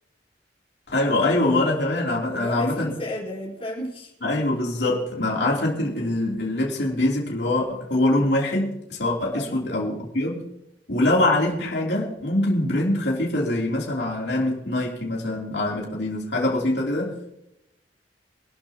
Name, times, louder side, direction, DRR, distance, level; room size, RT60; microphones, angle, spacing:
voice 1, 0.9-2.9 4.2-10.5 10.9-17.4, left 1 dB, 65° left, -2 dB, 3.2 m, -24 dB
voice 2, 2.3-4.1 9.3-9.6, left 1 dB, 30° left, -2 dB, 4.2 m, -33 dB
25.0 x 12.5 x 3.0 m, 0.82 s
head